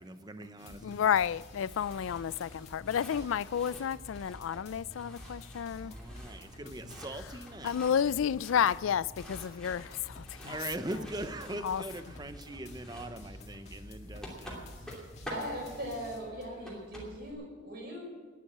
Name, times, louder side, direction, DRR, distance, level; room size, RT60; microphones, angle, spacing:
voice 1, 0.0-1.0 5.8-7.8 10.4-14.6, right 1 dB, 20° right, 0.7 m, -41 dB
sound 1, 0.6-16.7, left 1 dB, 35° left, 1.9 m, -50 dB
voice 2, 0.8-5.9 7.6-10.6 11.6-11.8, left 8 dB, 85° left, 0.3 m, -31 dB
sound 2, 1.4-17.3, equal, 5° left, 2.8 m, -49 dB
voice 3, 15.3-18.0, equal, 50° right, 5.3 m, -39 dB
12.0 x 10.5 x 8.6 m
head